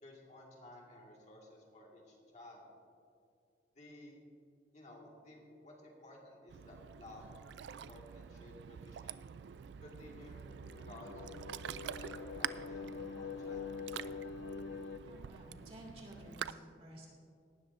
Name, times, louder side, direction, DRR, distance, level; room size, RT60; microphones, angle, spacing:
voice 1, 0.0-2.7 3.8-4.2 4.7-7.4 7.9-9.3 9.8-10.4 10.7-11.4 11.9-14.2, left 1 dB, 40° left, -2 dB, 1.8 m, -55 dB
Ocean, 6.5-16.5, right 8 dB, 70° right, 0.3 m, -47 dB
sound 1, 10.0-15.0, left 5 dB, 80° left, 0.5 m, -45 dB
voice 2, 15.1-17.1, equal, 35° right, -1 dB, 2.4 m, -53 dB
18.0 x 12.5 x 2.6 m, 2.3 s
head